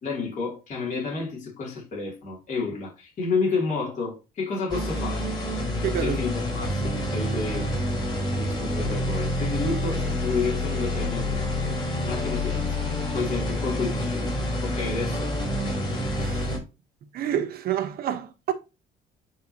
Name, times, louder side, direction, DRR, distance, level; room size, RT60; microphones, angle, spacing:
voice 1, 0.0-5.3 6.0-7.7 8.4-11.8 12.0-14.3 14.6-15.3, left 4 dB, 50° left, 2.9 m, -30 dB
sound 1, 4.7-16.6, left 1 dB, 25° left, 3.4 m, -28 dB
voice 2, 5.8-6.2 16.2-16.5 17.1-18.5, right 10 dB, 65° right, 1.1 m, -28 dB
8.9 x 3.7 x 2.8 m
cardioid pair, 110°, 17 cm